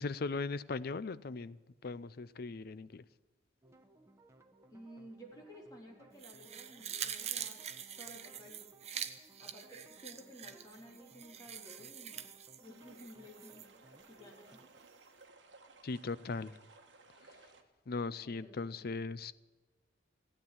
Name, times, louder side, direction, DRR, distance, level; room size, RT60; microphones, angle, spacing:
voice 1, 0.0-3.0 15.8-16.5 17.9-19.3, left 3 dB, 55° left, 16 dB, 0.5 m, -39 dB
sound 1, 3.6-14.7, right 1 dB, 15° right, 1.1 m, -63 dB
voice 2, 4.7-7.6 8.0-8.6 9.4-13.7 14.1-14.6 17.0-17.2 18.2-18.9, equal, 20° left, -2 dB, 3.4 m, -54 dB
sound 2, 6.2-13.7 14.0-14.1, right 8 dB, 35° right, 0.8 m, -44 dB
sound 3, 12.6-17.6, right 3 dB, 70° right, 1.4 m, -60 dB
15.5 x 9.0 x 9.7 m, 1.2 s
head